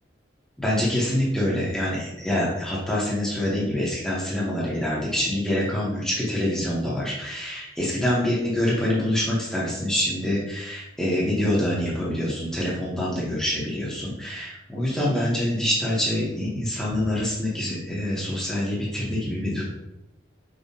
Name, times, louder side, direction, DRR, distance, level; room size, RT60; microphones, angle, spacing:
voice 1, 0.6-19.6, left 1 dB, 5° left, -7 dB, 0.7 m, -25 dB
5.0 x 2.1 x 2.7 m, 0.89 s
head